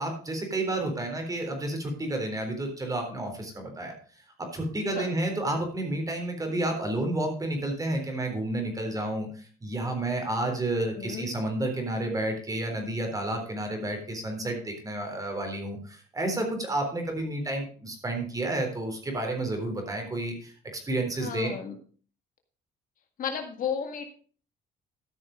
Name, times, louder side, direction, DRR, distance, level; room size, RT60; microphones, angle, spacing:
voice 1, 0.0-3.9 4.5-21.5, right 1 dB, 20° right, 4 dB, 3.8 m, -31 dB
voice 2, 10.8-11.3 21.2-21.8 23.2-24.1, left 7 dB, 55° left, 5 dB, 1.9 m, -33 dB
13.5 x 6.4 x 5.1 m, 0.42 s
cardioid pair, 110°, 17 cm